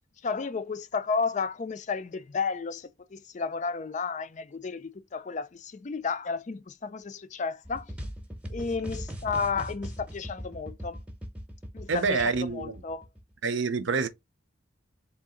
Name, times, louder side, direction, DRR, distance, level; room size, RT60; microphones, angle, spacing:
voice 1, 0.2-8.0 8.5-11.0 11.7-13.1, left 5 dB, 35° left, 0.4 m, -32 dB
sound 1, 7.6-13.3, equal, 5° right, 0.8 m, -39 dB
voice 2, 11.9-12.8 13.4-14.1, right 4 dB, 70° right, 0.6 m, -27 dB
3.7 x 2.8 x 3.7 m
head